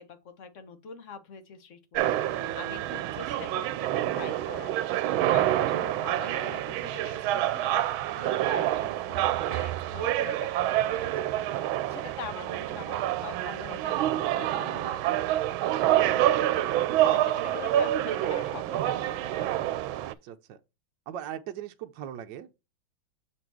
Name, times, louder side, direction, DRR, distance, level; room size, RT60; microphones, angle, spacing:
voice 1, 0.0-4.8 5.3-7.8 8.2-15.2 15.9-16.4 17.0-19.8, left 5 dB, 45° left, 1.1 m, -44 dB
sound 1, 1.9-20.1, right 13 dB, 90° right, 1.4 m, -27 dB
voice 2, 20.2-20.6 21.1-22.5, right 10 dB, 75° right, 1.2 m, -40 dB
6.9 x 4.2 x 4.5 m
omnidirectional pair, 2.1 m